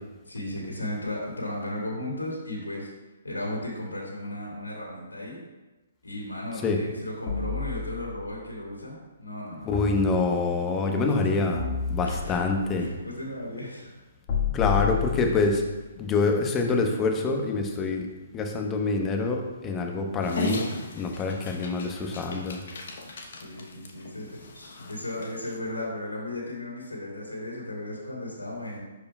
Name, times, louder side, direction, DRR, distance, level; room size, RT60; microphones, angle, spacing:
voice 1, 0.3-2.9 3.2-5.4 6.0-10.2 11.1-11.3 12.0-12.4 12.7-14.0 23.4-28.8, left 1 dB, 85° left, -3 dB, 2.2 m, -35 dB
sound 1, 7.3-8.3 9.7-10.7 11.6-12.6 14.3-15.7, left 7 dB, 40° left, 1.7 m, -30 dB
voice 2, 9.6-11.6 11.9-12.9 14.5-15.6 15.9-18.1 18.3-20.6 20.9-22.6, left 3 dB, 20° left, 3 dB, 1.0 m, -26 dB
Dog, 20.2-25.6, left 2 dB, 60° left, 0.9 m, -37 dB
12.0 x 4.7 x 2.3 m, 1.1 s
figure-of-eight pair, 130°, 0 cm